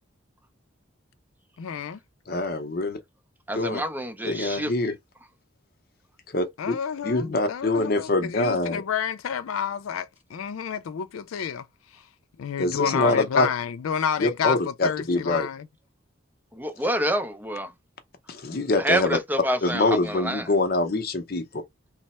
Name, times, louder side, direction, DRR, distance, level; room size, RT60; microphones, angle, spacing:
voice 1, 1.6-2.0 6.6-11.7 12.4-15.7, left 7 dB, 90° left, 0.4 m, -29 dB
voice 2, 2.3-3.0 3.5-3.8 4.2-4.9 6.3-6.8 7.0-8.8 12.6-13.5 14.2-15.5 18.3-19.2 19.6-21.4, left 2 dB, 50° left, 0.6 m, -24 dB
voice 3, 3.5-4.7 13.0-13.2 16.5-17.7 18.8-20.5, right 1 dB, 10° right, 0.4 m, -27 dB
3.2 x 2.0 x 4.1 m
head